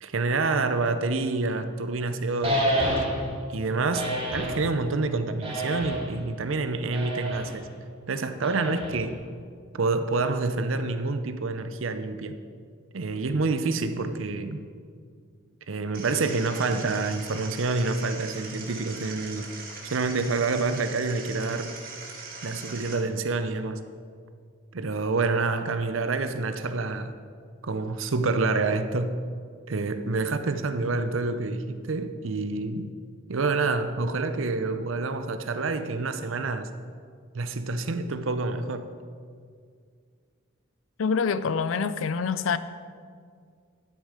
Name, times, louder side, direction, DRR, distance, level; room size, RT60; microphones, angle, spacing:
voice 1, 0.0-3.0 3.5-7.6 8.1-9.2 9.7-12.4 12.9-14.6 15.7-19.5 19.9-21.7 22.4-23.8 24.7-27.1 27.6-29.2 29.7-32.9 33.3-36.7 37.3-38.9, right 3 dB, 70° right, 0.6 m, -27 dB
sound 1, 2.4-3.3 3.9-4.6 5.4-6.2 6.9-7.5 8.4-9.1, right 1 dB, 30° right, 2.2 m, -28 dB
sound 2, 15.9-22.9, right 4 dB, 45° right, 1.6 m, -41 dB
voice 2, 41.0-42.6, left 5 dB, 75° left, 0.4 m, -26 dB
12.0 x 6.5 x 4.9 m
head